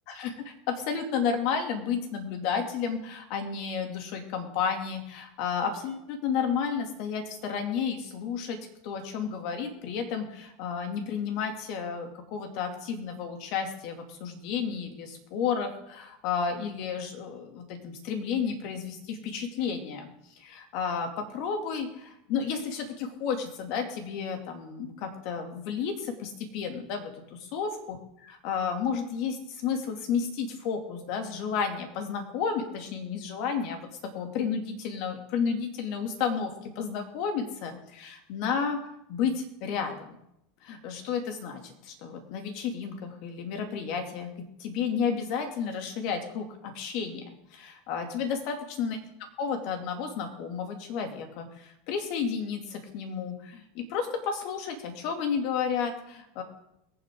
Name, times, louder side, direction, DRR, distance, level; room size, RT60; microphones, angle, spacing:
voice 1, 0.1-8.6 8.8-20.1 20.3-27.1 27.5-33.9 34.1-38.8 39.1-40.2 40.6-44.3 44.6-47.2 47.5-49.0 49.4-56.4, left 6 dB, 60° left, 4 dB, 2.5 m, -32 dB
22.5 x 7.8 x 3.8 m, 0.79 s
hypercardioid pair, 100°, 0 cm